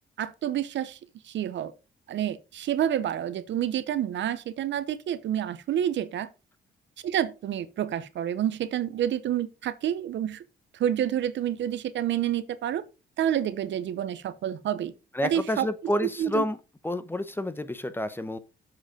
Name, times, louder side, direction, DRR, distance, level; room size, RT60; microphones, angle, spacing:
voice 1, 0.2-1.0 1.2-1.7 2.1-6.3 7.0-10.4 10.8-12.8 13.2-14.9 15.2-15.7 16.2-16.4, right 10 dB, 65° right, 0.8 m, -28 dB
voice 2, 15.1-16.6 16.8-18.4, left 1 dB, 10° left, 0.8 m, -29 dB
7.5 x 4.9 x 4.9 m
cardioid pair, 90°, 20 cm